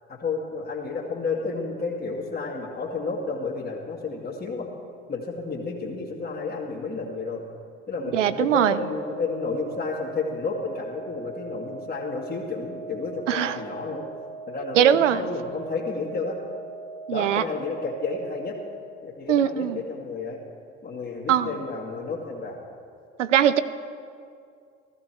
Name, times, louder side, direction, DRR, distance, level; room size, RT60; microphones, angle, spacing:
voice 1, 0.1-4.7 5.1-7.4 7.9-14.1 14.5-16.4 17.1-18.6 19.0-20.4 20.8-22.6, left 4 dB, 25° left, -4 dB, 2.2 m, -31 dB
voice 2, 8.1-8.8 13.3-13.6 14.7-15.3 17.1-17.4 19.3-19.8 21.3-21.5 23.2-23.6, right 10 dB, 85° right, 14 dB, 0.6 m, -21 dB
sound 1, 8.7-18.7, right 4 dB, 55° right, 1.4 m, -40 dB
14.5 x 14.0 x 4.5 m, 2.3 s
hypercardioid pair, 75°, 36 cm